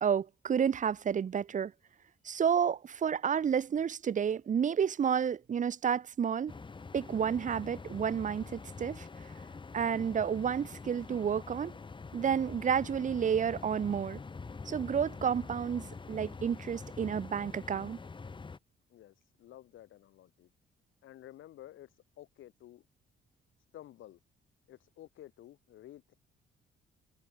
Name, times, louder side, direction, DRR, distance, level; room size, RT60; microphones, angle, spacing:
voice 1, 0.0-1.7 2.2-6.5 6.9-9.1 9.7-11.7 12.1-14.2 14.7-18.0, right 7 dB, 40° right, 0.7 m, -30 dB
sound 1, 6.5-18.6, left 4 dB, 25° left, 1.2 m, -45 dB
voice 2, 18.9-20.5 21.0-22.8 23.7-24.2 24.7-26.1, left 13 dB, 80° left, 3.4 m, -52 dB
cardioid pair, 90°, 20 cm